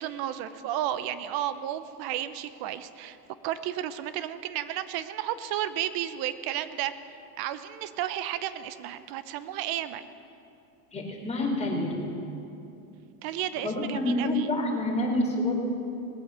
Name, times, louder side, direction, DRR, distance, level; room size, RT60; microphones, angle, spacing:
voice 1, 0.0-3.2 3.4-6.9 7.4-10.1 13.2-14.5, right 12 dB, 50° right, 13 dB, 0.9 m, -32 dB
voice 2, 10.9-12.0 13.6-15.6, left 1 dB, 15° left, -2 dB, 3.8 m, -27 dB
19.5 x 8.6 x 6.8 m, 2.8 s
supercardioid pair, 115°, 46 cm